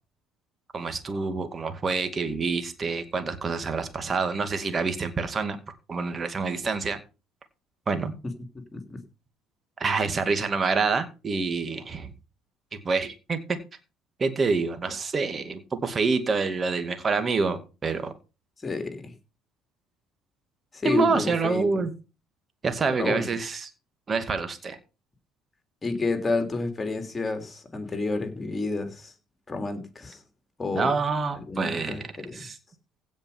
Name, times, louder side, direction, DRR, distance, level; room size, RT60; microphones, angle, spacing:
voice 1, 0.7-5.6 5.9-7.0 7.9-8.1 9.8-12.1 12.7-13.6 14.2-18.1 20.8-21.9 22.6-23.7 24.1-24.8 30.7-32.1 32.3-32.5, right 4 dB, 35° right, 2.3 m, -27 dB
voice 2, 18.6-19.1 20.7-21.8 23.0-23.3 25.8-29.1 29.5-30.2 30.6-30.9 31.3-32.5, left 3 dB, 25° left, 3.2 m, -30 dB
16.0 x 5.4 x 5.6 m
hypercardioid pair, 60°, 0 cm